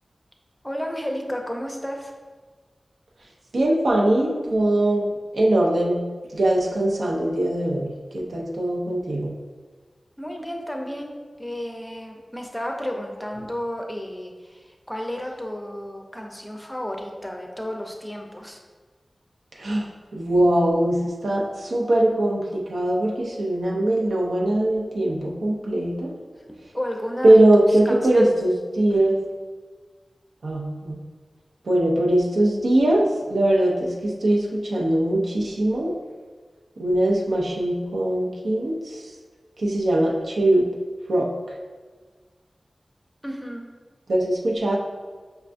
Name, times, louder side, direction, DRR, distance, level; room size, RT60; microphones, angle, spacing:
voice 1, 0.6-2.1 10.2-11.1 11.4-18.6 26.5-28.3 43.2-43.6, equal, 10° left, 2 dB, 0.5 m, -32 dB
voice 2, 3.5-6.0 6.3-7.9 8.1-9.3 19.6-19.9 20.1-26.1 27.2-29.2 30.4-31.0 31.7-35.9 36.8-39.0 39.6-40.7 41.1-41.3 44.1-44.8, right 1 dB, 90° right, -1 dB, 0.5 m, -21 dB
5.3 x 2.2 x 2.5 m, 1.4 s
wide cardioid pair, 50°, 0 cm